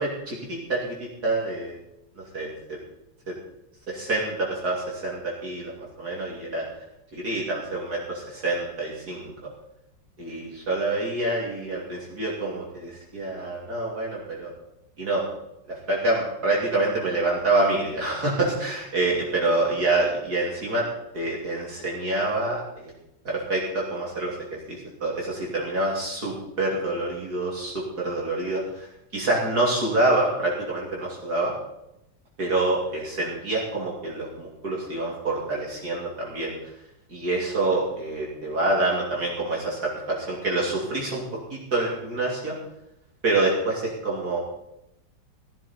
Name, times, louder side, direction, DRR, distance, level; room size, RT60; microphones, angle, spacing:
voice 1, 0.0-1.8 2.3-2.8 3.3-3.4 3.9-6.7 7.1-9.3 10.2-14.5 15.0-15.2 15.7-20.9 21.1-22.9 23.3-24.4 24.7-28.9 29.1-31.5 32.4-36.5 37.1-41.2 41.5-42.6 43.2-44.4, right 2 dB, 55° right, -4 dB, 3.5 m, -27 dB
17.0 x 12.0 x 4.4 m, 0.84 s
omnidirectional pair, 2.0 m